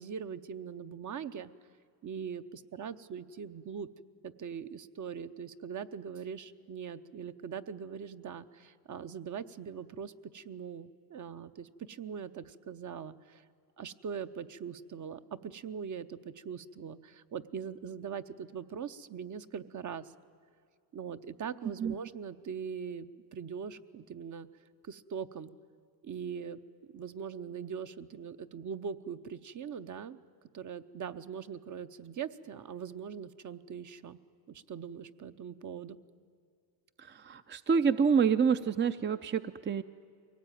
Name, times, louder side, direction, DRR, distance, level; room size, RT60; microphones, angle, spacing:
voice 1, 0.0-1.5 2.0-3.9 4.2-13.4 13.8-20.1 20.9-24.5 24.8-25.5 26.0-26.6 26.9-30.2 30.5-34.2 34.5-36.0, right 7 dB, 45° right, 11 dB, 0.9 m, -41 dB
voice 2, 37.0-39.8, right 6 dB, 25° right, 10 dB, 0.6 m, -27 dB
23.0 x 18.0 x 9.2 m, 2.2 s
cardioid pair, 85°, 44 cm